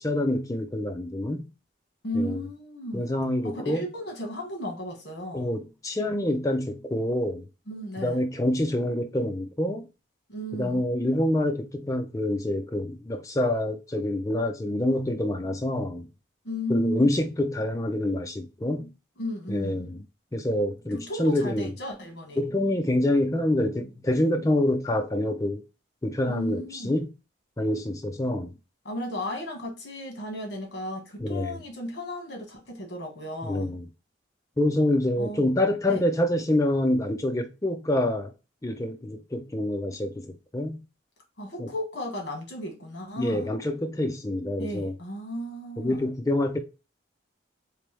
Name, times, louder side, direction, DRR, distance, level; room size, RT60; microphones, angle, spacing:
voice 1, 0.0-1.5 2.1-2.4 2.9-3.9 5.3-7.5 8.0-9.8 10.5-16.1 16.7-18.9 19.5-20.0 20.3-21.7 22.4-25.6 26.0-27.1 27.6-28.5 31.2-31.6 33.4-33.8 34.6-38.3 38.6-40.8 41.6-41.7 43.2-44.9 45.8-46.6, left 1 dB, 15° left, 0.5 m, -26 dB
voice 2, 2.0-3.1 3.4-5.5 7.7-8.2 10.3-10.8 16.4-17.1 19.2-19.9 20.9-22.4 26.2-26.9 28.8-33.7 35.2-35.5 35.9-36.0 41.4-43.5 44.6-46.0, equal, 55° left, 1.4 m, -34 dB
3.3 x 3.0 x 3.3 m
head